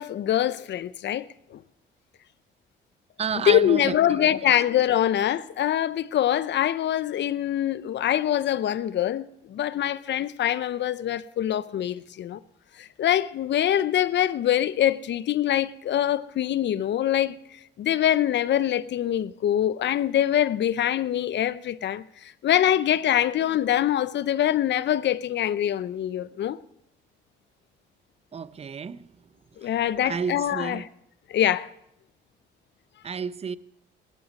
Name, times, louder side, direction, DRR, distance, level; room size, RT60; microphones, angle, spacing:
voice 1, 0.0-1.6 3.5-12.4 12.8-17.4 17.8-26.6 29.6-30.8 31.3-31.7, left 11 dB, 65° left, 0.7 m, -24 dB
voice 2, 3.2-4.5 28.3-29.1 29.6-30.8 33.0-33.6, right 6 dB, 30° right, 0.6 m, -32 dB
18.5 x 11.0 x 5.3 m
cardioid pair, 90°, 20 cm